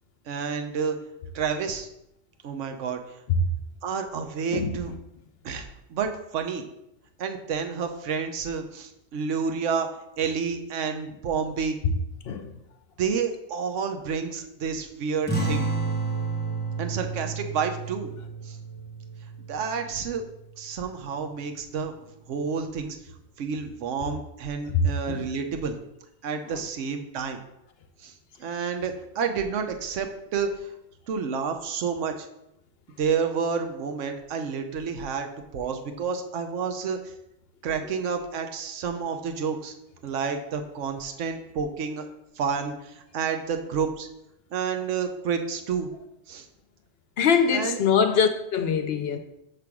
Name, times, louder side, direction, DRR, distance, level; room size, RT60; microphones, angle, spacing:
voice 1, 0.3-1.0 1.3-1.9 2.4-3.0 3.8-4.9 5.4-6.6 7.2-9.9 10.2-11.8 13.0-15.7 16.8-18.1 18.4-18.6 19.5-20.2 20.6-21.9 22.3-23.0 23.4-25.8 26.2-27.4 28.0-28.1 28.4-30.5 31.1-32.1 33.0-35.3 35.5-37.0 37.6-39.7 40.0-42.1 42.4-44.1 44.5-45.9 46.3-46.5 47.5-47.8 49.1-49.2, right 6 dB, 70° right, 1.1 m, -29 dB
sound 1, 15.3-20.3, right 3 dB, 10° left, 1.0 m, -31 dB
voice 2, 24.7-25.3 47.2-49.2, left 6 dB, 60° left, 0.7 m, -23 dB
6.8 x 3.3 x 5.9 m
omnidirectional pair, 1.3 m